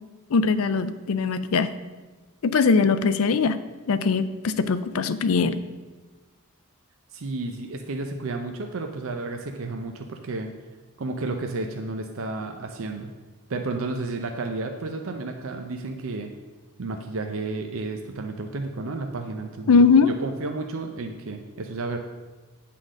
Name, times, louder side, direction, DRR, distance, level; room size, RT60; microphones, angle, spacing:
voice 1, 0.3-1.7 2.4-3.6 3.9-5.6 19.7-20.1, left 4 dB, 70° left, 13 dB, 0.4 m, -20 dB
voice 2, 7.1-10.5 11.0-13.1 13.5-16.3 16.8-22.0, right 3 dB, 65° right, 4 dB, 0.6 m, -32 dB
8.4 x 3.8 x 6.2 m, 1.2 s
head